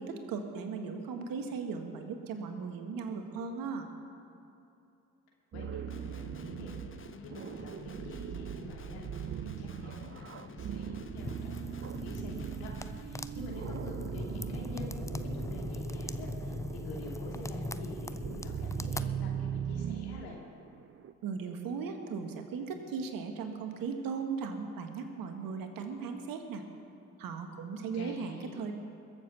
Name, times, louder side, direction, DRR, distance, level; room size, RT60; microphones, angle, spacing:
voice 1, 0.0-3.9 21.2-26.6 27.2-28.7, right 5 dB, 65° right, 5 dB, 1.6 m, -37 dB
voice 2, 5.5-20.4 27.9-28.5, left 3 dB, 75° left, -2 dB, 2.7 m, -47 dB
sound 1, 5.5-21.1, right 9 dB, 35° right, 0.5 m, -40 dB
Guitar, 5.9-13.1, left 5 dB, 35° left, 1.0 m, -50 dB
sound 2, 11.2-19.0, left 2 dB, 10° left, 0.6 m, -40 dB
21.5 x 7.4 x 6.0 m, 2.7 s
hypercardioid pair, 45°, 37 cm